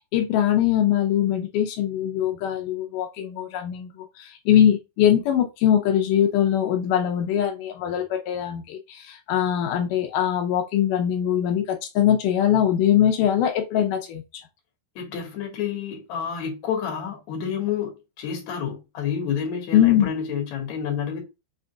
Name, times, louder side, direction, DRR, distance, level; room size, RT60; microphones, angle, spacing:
voice 1, 0.1-14.2 19.7-20.1, left 10 dB, 85° left, 1.8 m, -22 dB
voice 2, 15.0-21.2, left 7 dB, 55° left, 2.4 m, -29 dB
6.0 x 3.8 x 2.3 m
omnidirectional pair, 4.8 m